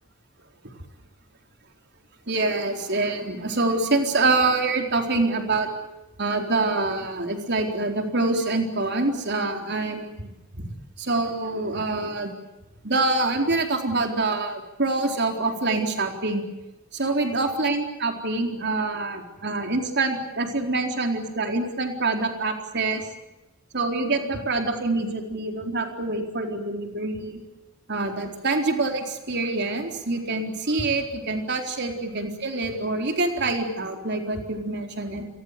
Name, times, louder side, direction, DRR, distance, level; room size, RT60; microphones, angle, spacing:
voice 1, 2.3-5.7 6.2-10.3 10.5-10.7 11.0-12.3 12.8-16.5 16.9-23.0 23.7-27.4 27.9-35.3, right 3 dB, 55° right, 4 dB, 4.2 m, -25 dB
29.5 x 23.0 x 6.8 m, 0.99 s
head